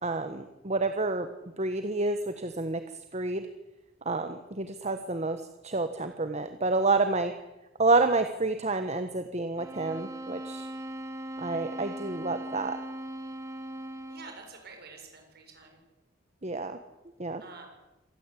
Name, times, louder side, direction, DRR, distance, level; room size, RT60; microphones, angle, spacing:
voice 1, 0.0-1.3 1.6-2.8 3.1-3.5 4.0-7.3 7.8-10.7 11.4-12.8 16.4-16.8 17.2-17.4, right 3 dB, 35° right, 9 dB, 1.3 m, -29 dB
sound 1, 9.6-14.4, right 1 dB, 15° right, 2.0 m, -39 dB
voice 2, 14.1-15.8 17.4-17.7, right 4 dB, 55° right, 3 dB, 7.2 m, -48 dB
26.0 x 19.0 x 8.5 m, 1.0 s
head